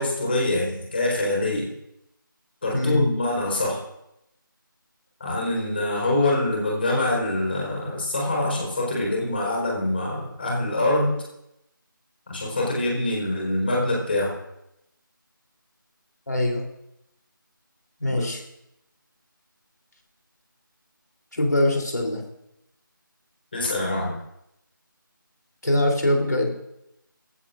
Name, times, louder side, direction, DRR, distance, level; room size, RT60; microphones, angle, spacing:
voice 1, 0.0-1.7 2.6-3.8 5.2-11.1 12.3-14.4 18.1-18.2 23.5-24.1, left 1 dB, 30° left, -2 dB, 4.6 m, -25 dB
voice 2, 2.7-3.1 16.3-16.6 18.0-18.4 21.3-22.2 25.6-26.5, left 1 dB, 55° left, 1 dB, 3.6 m, -22 dB
23.5 x 15.5 x 2.6 m, 0.82 s
figure-of-eight pair, 165°, 11 cm